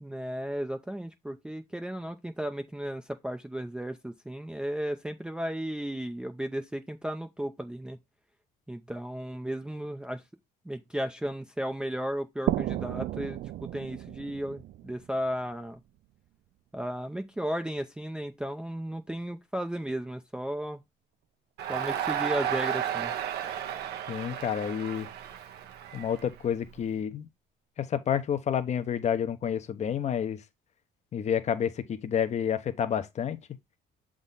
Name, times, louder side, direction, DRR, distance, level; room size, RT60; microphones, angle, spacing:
voice 1, 0.0-8.0 8.7-10.2 10.7-15.8 16.7-20.8 21.7-23.1, right 1 dB, 5° right, 0.6 m, -34 dB
sound 1, 12.5-16.0, right 14 dB, 60° right, 0.4 m, -34 dB
Crowd, 21.6-26.8, right 9 dB, 75° right, 1.0 m, -33 dB
voice 2, 24.1-25.1 25.9-27.3 27.8-30.4 31.1-33.4, left 8 dB, 40° left, 0.9 m, -29 dB
7.1 x 3.8 x 3.9 m
cardioid pair, 110°, 17 cm